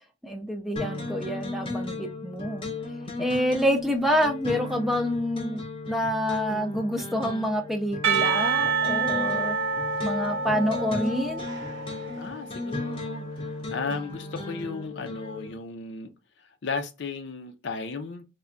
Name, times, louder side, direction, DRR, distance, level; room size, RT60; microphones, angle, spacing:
voice 1, 0.2-2.7 3.2-9.5 10.0-11.5, equal, ahead, 0.4 m, -27 dB
sound 1, 0.8-15.5, left 2 dB, 30° left, 0.7 m, -36 dB
Percussion / Church bell, 8.0-13.0, right 5 dB, 85° right, 0.7 m, -28 dB
voice 2, 12.2-13.3 13.7-16.1 16.6-18.2, left 4 dB, 65° left, 0.5 m, -34 dB
3.4 x 2.2 x 3.7 m
head